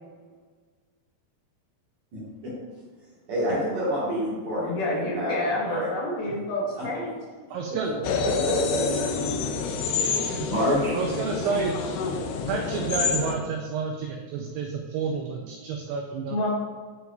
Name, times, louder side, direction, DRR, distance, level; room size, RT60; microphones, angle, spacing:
voice 1, 3.3-5.9 6.8-6.9 8.4-9.0 10.1-11.0, equal, 55° right, -9 dB, 2.1 m, -28 dB
voice 2, 4.6-7.1 16.3-16.5, left 1 dB, 70° left, -5 dB, 2.5 m, -28 dB
voice 3, 7.5-7.9 10.9-11.8 12.5-16.5, right 5 dB, 90° right, 2 dB, 2.2 m, -30 dB
sound 1, 8.0-13.4, left 5 dB, 90° left, 2.3 m, -28 dB
9.3 x 4.6 x 2.3 m, 1.5 s
omnidirectional pair, 5.2 m